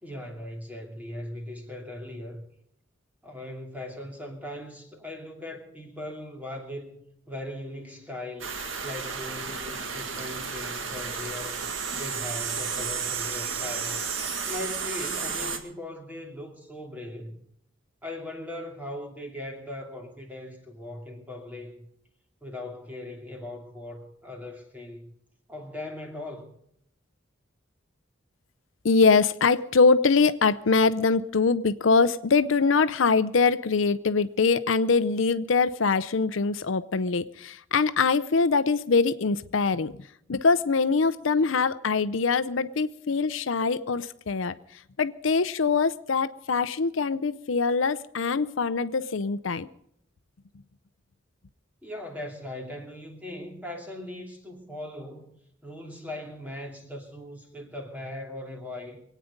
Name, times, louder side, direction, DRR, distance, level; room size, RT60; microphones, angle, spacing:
voice 1, 0.0-2.5 3.2-8.5 8.8-14.1 14.5-17.4 18.0-21.9 22.4-25.1 25.5-26.5 51.8-55.3 55.6-59.0, left 1 dB, 10° right, 2.7 m, -39 dB
sound 1, 8.4-15.6, right 5 dB, 85° right, 1.8 m, -32 dB
voice 2, 28.8-40.0 40.3-44.5 45.0-49.7, left 4 dB, 80° left, 0.6 m, -23 dB
24.5 x 9.3 x 5.2 m
head